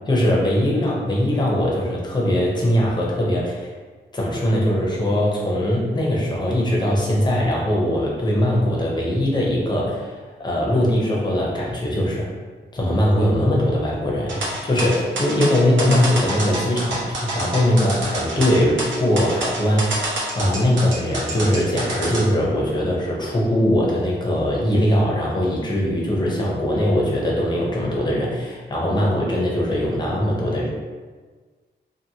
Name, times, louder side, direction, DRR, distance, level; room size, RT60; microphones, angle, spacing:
voice 1, 0.1-3.7 4.1-10.1 10.4-12.3 12.7-20.1 20.3-30.7, left 1 dB, 25° left, -4 dB, 0.6 m, -21 dB
sound 1, 14.3-22.2, right 1 dB, 90° right, 0.7 m, -27 dB
2.7 x 2.5 x 2.7 m, 1.4 s
wide cardioid pair, 165°, 19 cm